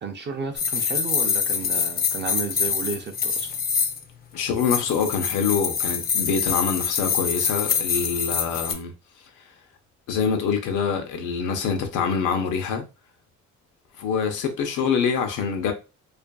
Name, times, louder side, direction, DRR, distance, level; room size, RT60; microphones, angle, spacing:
voice 1, 0.0-3.5, right 4 dB, 35° right, 0.4 m, -32 dB
sound 1, 0.6-4.0 4.6-8.7, left 6 dB, 30° left, 0.4 m, -25 dB
voice 2, 4.3-8.9 10.1-12.8 14.0-15.7, left 6 dB, 85° left, 0.7 m, -25 dB
2.5 x 2.5 x 2.2 m
cardioid pair, 90°, 30 cm